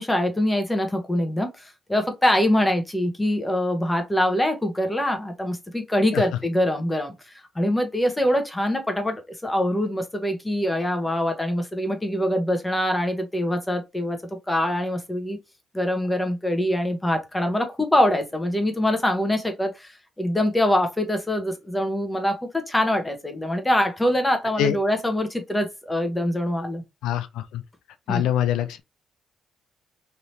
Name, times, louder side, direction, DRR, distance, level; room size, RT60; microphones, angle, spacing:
voice 1, 0.0-15.4 15.7-26.8 28.1-28.3, left 1 dB, 10° left, 1.0 m, -24 dB
voice 2, 27.0-27.6 28.1-28.8, left 10 dB, 85° left, 0.4 m, -24 dB
3.3 x 2.8 x 2.7 m
cardioid pair, 90°, 0 cm